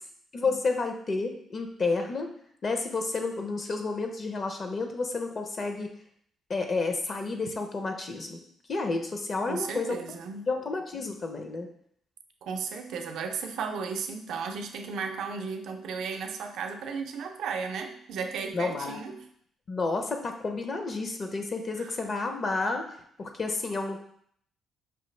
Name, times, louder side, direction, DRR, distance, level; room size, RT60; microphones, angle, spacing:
voice 1, 0.3-2.3 2.6-5.9 6.5-8.4 8.7-10.2 10.5-11.7 18.5-19.0 19.7-22.9 23.2-24.0, left 3 dB, 45° left, 5 dB, 0.5 m, -30 dB
voice 2, 9.5-10.5 12.4-19.2 21.8-22.0, right 5 dB, 75° right, 5 dB, 0.5 m, -35 dB
5.5 x 2.3 x 3.2 m, 0.65 s
cardioid pair, 90°, 0 cm